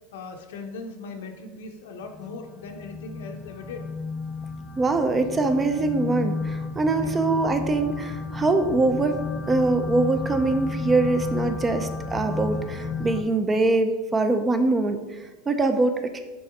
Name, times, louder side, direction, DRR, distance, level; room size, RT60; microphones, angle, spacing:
voice 1, 0.1-3.9 6.9-7.2, left 3 dB, 90° left, 4 dB, 0.8 m, -39 dB
sound 1, 2.0-13.2, left 3 dB, 25° left, 0.7 m, -32 dB
voice 2, 4.8-16.2, right 3 dB, 20° right, 7 dB, 0.5 m, -23 dB
6.1 x 4.5 x 3.5 m, 1.2 s
supercardioid pair, 125°, 0 cm